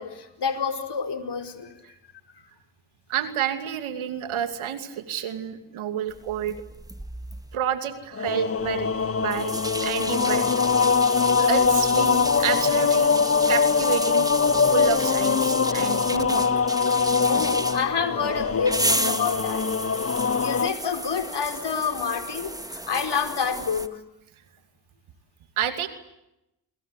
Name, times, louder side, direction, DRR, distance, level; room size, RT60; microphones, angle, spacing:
voice 1, 0.0-1.7 17.3-19.7 20.4-24.0, left 6 dB, 55° left, 8 dB, 4.9 m, -28 dB
voice 2, 3.1-6.6 7.5-8.9 9.2-10.5 11.4-13.1 13.5-16.5 25.6-25.9, right 9 dB, 80° right, 8 dB, 2.8 m, -29 dB
sound 1, 6.1-7.6 8.6-23.9, right 1 dB, 10° right, 2.0 m, -33 dB
sound 2, 8.1-20.7, left 5 dB, 30° left, 1.1 m, -22 dB
29.0 x 22.5 x 8.4 m, 0.87 s
supercardioid pair, 50°, 48 cm